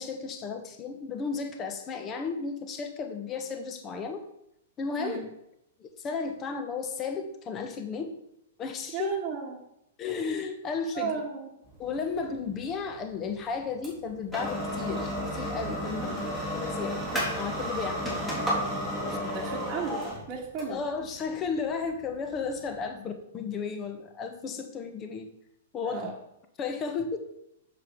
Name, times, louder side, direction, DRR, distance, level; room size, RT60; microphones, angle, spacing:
voice 1, 0.0-4.2 4.8-5.2 5.8-8.1 8.6-9.1 10.0-11.2 11.8-16.1 16.5-17.0 17.4-18.0 19.0-19.2 20.7-25.3 25.7-26.1 26.6-27.2, left 5 dB, 30° left, 6 dB, 1.3 m, -34 dB
voice 2, 8.9-9.6 10.9-11.5 16.0-16.2 19.0-19.9 20.3-20.8 22.9-23.1 25.8-26.1, right 6 dB, 30° right, -3 dB, 1.6 m, -35 dB
sound 1, 11.7-22.8, equal, 10° left, 3.7 m, -33 dB
7.3 x 7.1 x 4.8 m, 0.80 s
hypercardioid pair, 120°, 0 cm